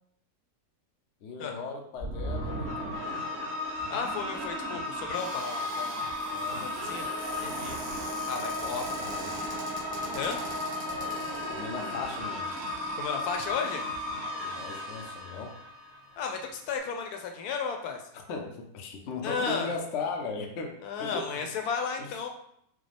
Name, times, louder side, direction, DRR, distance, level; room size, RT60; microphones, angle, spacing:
voice 1, 1.2-3.0 6.3-6.7 8.4-9.5 11.5-12.6 14.4-15.6 18.3-21.5 22.0-22.1, left 4 dB, 90° left, 2 dB, 0.6 m, -38 dB
sound 1, 2.0-16.3, left 1 dB, 55° right, 1.3 m, -35 dB
voice 2, 3.9-6.1 6.5-7.1 7.4-7.8 8.3-9.1 10.1-10.4 12.9-13.8 16.2-18.0 19.2-19.7 20.8-22.3, left 5 dB, 70° left, 4 dB, 1.0 m, -34 dB
Cupboard open or close, 5.1-15.4 16.1-16.2 16.4-16.8, right 1 dB, 25° right, 1.0 m, -46 dB
4.9 x 2.0 x 3.3 m, 0.72 s
omnidirectional pair, 1.9 m